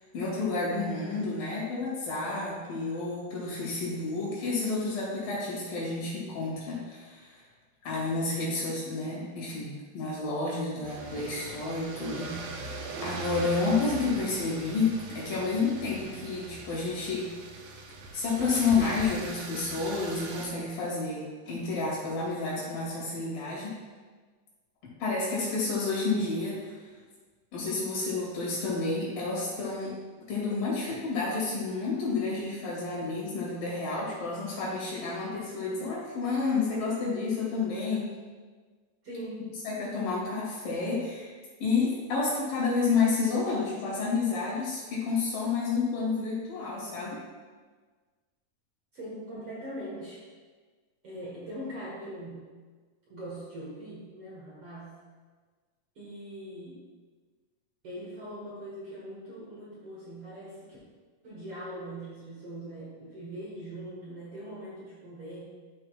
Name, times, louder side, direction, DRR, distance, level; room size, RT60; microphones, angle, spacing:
voice 1, 0.1-7.4 7.8-17.3 18.1-23.7 25.0-26.7 27.5-30.0 30.3-38.1 39.6-41.3 41.6-47.2, left 4 dB, 70° left, -6 dB, 4.1 m, -30 dB
sound 1, 10.8-20.5, right 3 dB, 85° right, 2.7 m, -40 dB
voice 2, 39.0-39.5 48.9-50.3 51.0-52.4 53.1-54.9 56.0-56.8 57.8-60.8 61.2-65.4, right 1 dB, 50° right, -7 dB, 1.9 m, -41 dB
12.5 x 6.0 x 2.4 m, 1.4 s
omnidirectional pair, 4.2 m